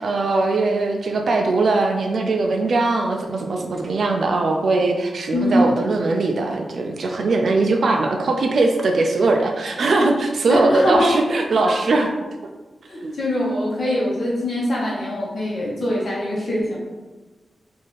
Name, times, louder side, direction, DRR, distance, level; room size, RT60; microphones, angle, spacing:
voice 1, 0.0-12.1 13.0-13.1, right 3 dB, 55° right, 3 dB, 0.3 m, -20 dB
voice 2, 5.3-5.7 10.5-11.1 11.6-12.0 12.9-16.8, left 1 dB, 45° left, -5 dB, 0.9 m, -23 dB
4.1 x 2.5 x 3.2 m, 1.2 s
wide cardioid pair, 180°, 0 cm